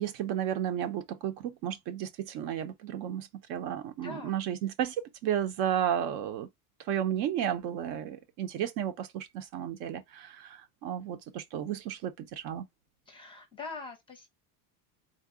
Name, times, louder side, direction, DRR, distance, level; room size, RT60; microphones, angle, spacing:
voice 1, 0.0-6.5 6.9-12.7, right 10 dB, 60° right, 0.7 m, -33 dB
voice 2, 4.0-4.3 13.1-14.3, left 4 dB, 10° left, 0.6 m, -43 dB
3.8 x 2.0 x 3.6 m
cardioid pair, 170°, 42 cm